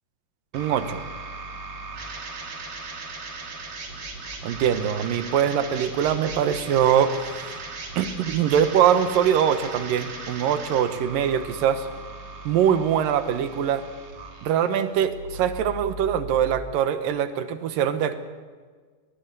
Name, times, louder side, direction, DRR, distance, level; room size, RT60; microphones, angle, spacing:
sound 1, 0.5-16.5, right 3 dB, 55° right, 4.1 m, -38 dB
voice 1, 0.5-1.0 4.4-7.6 8.0-11.9 12.5-13.8 14.4-18.2, right 9 dB, 90° right, 10 dB, 2.9 m, -23 dB
22.0 x 22.0 x 6.9 m, 1.5 s
omnidirectional pair, 3.8 m